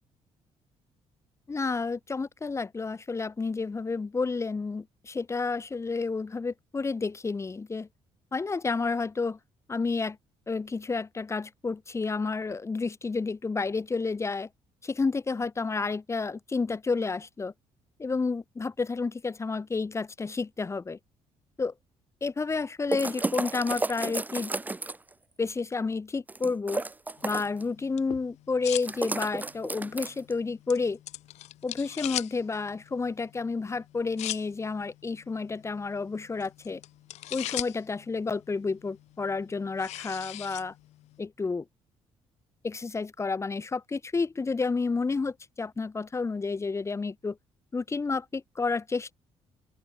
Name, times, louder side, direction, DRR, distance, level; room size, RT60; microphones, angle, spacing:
voice 1, 1.5-7.9 8.3-9.4 9.7-10.2 10.5-14.5 14.8-17.5 18.0-21.0 21.6-21.7 22.2-24.5 25.4-26.8 27.2-31.0 31.6-36.8 37.3-40.7 41.2-41.7 42.6-47.4 47.7-49.1, left 4 dB, 25° left, 2.1 m, -30 dB
sound 1, 22.9-25.1 26.3-27.6 28.8-30.3, right 3 dB, 15° right, 0.9 m, -32 dB
sound 2, 27.2-41.2, left 15 dB, 80° left, 1.3 m, -42 dB
open air
cardioid pair, 105°, 11 cm